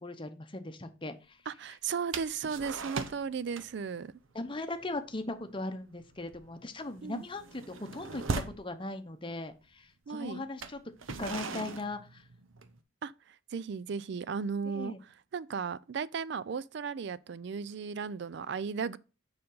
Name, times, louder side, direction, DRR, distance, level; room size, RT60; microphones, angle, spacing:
voice 1, 0.0-1.4 4.3-10.8 11.2-12.2 14.7-15.0, left 2 dB, 25° left, 0.8 m, -39 dB
voice 2, 1.5-4.2 7.0-7.2 10.1-10.4 13.0-19.0, right 6 dB, 60° right, 0.4 m, -36 dB
sound 1, 2.1-3.3 3.5-3.9 4.2-4.4 4.8-5.1 5.3-5.6 6.0-8.7 9.5-9.6 10.5-12.8, right 4 dB, 80° right, 0.8 m, -39 dB
6.9 x 5.2 x 3.8 m
head